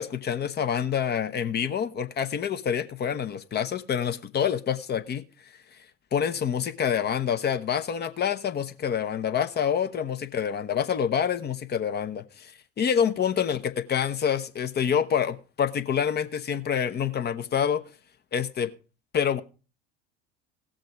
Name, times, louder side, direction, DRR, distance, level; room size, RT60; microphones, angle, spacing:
voice 1, 0.0-5.2 6.1-17.8 18.3-18.7 19.1-19.4, left 8 dB, 30° left, 0.9 m, -27 dB
16.5 x 6.5 x 4.9 m
figure-of-eight pair, 70°, 34 cm